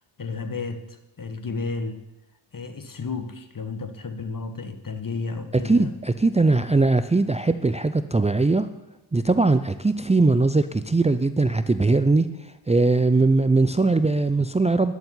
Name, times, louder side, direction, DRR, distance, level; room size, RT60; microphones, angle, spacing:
voice 1, 0.2-2.0 2.5-5.9, left 4 dB, 40° left, 9 dB, 1.7 m, -32 dB
voice 2, 5.6-8.7 9.1-14.9, right 3 dB, 15° right, 10 dB, 0.6 m, -20 dB
12.0 x 7.3 x 9.8 m, 0.97 s
cardioid pair, 55°, 50 cm